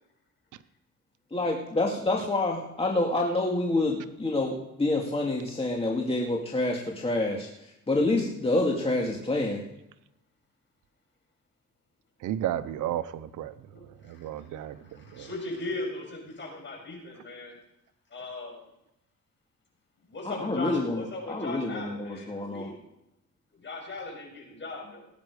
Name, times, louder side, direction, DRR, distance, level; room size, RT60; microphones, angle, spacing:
voice 1, 1.3-7.5 7.9-9.6 20.2-22.7, left 2 dB, 20° left, -1 dB, 2.3 m, -27 dB
voice 2, 12.2-13.5 14.1-14.8 15.2-15.3, right 11 dB, 80° right, 14 dB, 0.8 m, -32 dB
voice 3, 14.1-17.6 18.1-18.6 20.1-22.8 23.6-25.1, left 2 dB, 40° left, 1 dB, 6.3 m, -38 dB
18.5 x 9.3 x 4.9 m, 0.84 s
cardioid pair, 90°, 30 cm